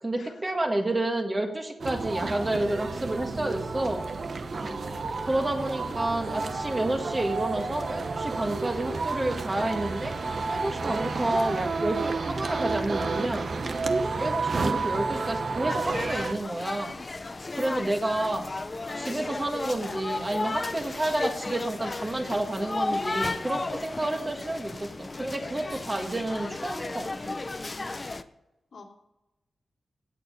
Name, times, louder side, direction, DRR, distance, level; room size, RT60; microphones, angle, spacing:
voice 1, 0.0-4.0 5.0-10.1 10.5-13.5 14.2-16.9 17.6-18.5 19.0-27.3, right 1 dB, 25° right, 3 dB, 1.7 m, -30 dB
sound 1, 1.8-16.3, right 4 dB, 55° right, 1.0 m, -31 dB
voice 2, 4.5-5.0 17.5-17.9 28.7-28.8, left 3 dB, 75° left, 1 dB, 2.5 m, -47 dB
sound 2, 15.7-28.2, left 2 dB, 30° left, 0.7 m, -34 dB
17.0 x 7.1 x 5.5 m, 0.94 s
wide cardioid pair, 145°, 0 cm